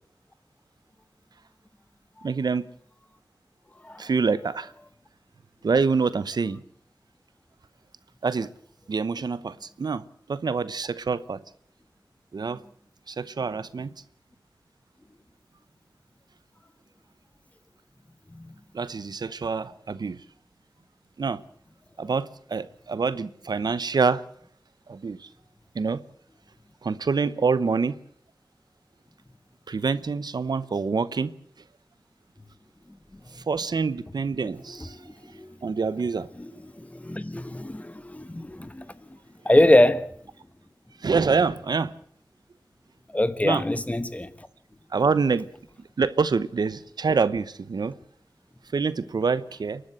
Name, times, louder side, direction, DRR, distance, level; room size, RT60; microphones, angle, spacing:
voice 1, 2.2-2.6 4.0-4.7 5.6-6.6 8.2-8.5 8.9-10.0 10.3-11.4 12.3-12.6 13.1-13.9 18.7-20.2 21.2-21.4 22.0-24.2 24.9-25.3 25.7-26.0 26.8-28.0 29.7-31.3 33.3-35.0 35.6-36.3 41.0-41.9 43.4-43.6 44.9-45.5 46.0-47.9 48.7-49.8, right 5 dB, 80° right, 0.9 m, -26 dB
voice 2, 34.7-35.6 36.4-38.9 39.4-40.1 43.1-44.5, left 1 dB, 20° left, 1.2 m, -24 dB
29.0 x 11.5 x 8.0 m
wide cardioid pair, 85°, 7 cm